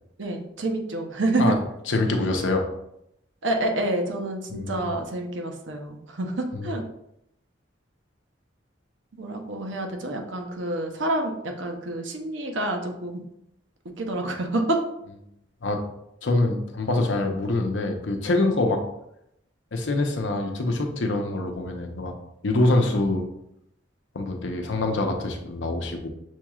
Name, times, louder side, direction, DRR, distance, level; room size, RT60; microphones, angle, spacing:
voice 1, 0.2-1.5 3.4-6.8 9.1-13.2 14.0-14.8, right 2 dB, 90° right, 3 dB, 0.7 m, -28 dB
voice 2, 1.9-2.7 4.5-4.9 6.5-6.7 15.6-15.8 16.2-18.8 19.7-22.1 22.4-23.2 24.1-26.1, left 2 dB, 85° left, 3 dB, 0.7 m, -25 dB
6.3 x 3.0 x 2.3 m, 0.79 s
head